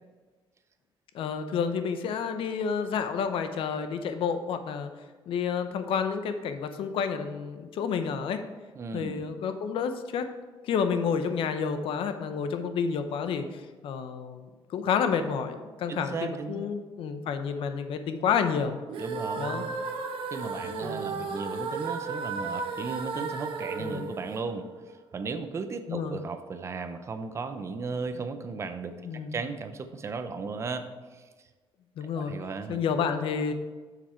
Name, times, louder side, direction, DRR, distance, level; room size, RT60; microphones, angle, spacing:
voice 1, 1.1-4.9 5.3-8.4 8.9-10.3 10.6-14.4 14.7-18.8 19.4-19.7 20.8-21.1 23.8-24.1 25.9-26.2 29.1-29.4 32.0-32.3 32.7-33.5, left 6 dB, 70° left, 9 dB, 0.7 m, -30 dB
voice 2, 8.8-9.3 15.9-16.7 19.0-19.8 20.3-31.5 32.0-32.8, right 4 dB, 30° right, 9 dB, 0.5 m, -36 dB
sound 1, 18.9-25.0, right 4 dB, 65° right, 0.8 m, -34 dB
7.4 x 6.8 x 4.4 m, 1.3 s
cardioid pair, 170°, 9 cm